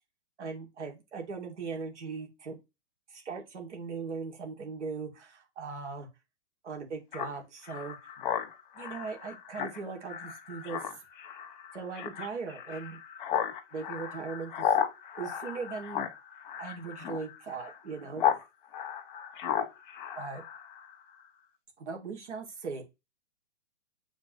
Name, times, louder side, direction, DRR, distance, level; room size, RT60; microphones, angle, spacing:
voice 1, 0.4-2.6 3.1-6.1 6.6-8.1 8.7-10.8 11.7-13.0 13.7-14.8 15.2-16.1 16.6-18.2 20.2-20.4 21.8-22.8, right 5 dB, 70° right, 1 dB, 2.8 m, -39 dB
Speech synthesizer, 7.1-18.4 18.7-20.9, left 8 dB, 45° left, 1.5 m, -34 dB
8.1 x 4.4 x 3.1 m, 0.23 s
hypercardioid pair, 160°, 36 cm